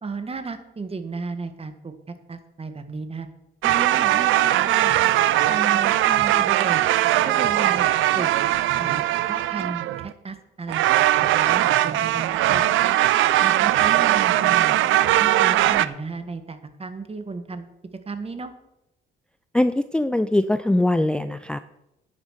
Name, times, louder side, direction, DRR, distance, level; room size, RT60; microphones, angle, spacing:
voice 1, 0.0-1.9 2.3-3.3 3.6-5.0 5.5-6.8 7.2-7.9 8.1-8.3 8.8-10.9 11.2-12.7 13.4-14.8 15.2-17.7 18.0-18.5, right 4 dB, 30° right, 9 dB, 1.6 m, -34 dB
sound 1, 3.6-10.1 10.7-15.9, right 14 dB, 85° right, 0.6 m, -20 dB
voice 2, 19.5-21.6, left 1 dB, 5° left, 12 dB, 0.4 m, -21 dB
10.0 x 9.5 x 6.5 m, 0.90 s
cardioid pair, 90°, 20 cm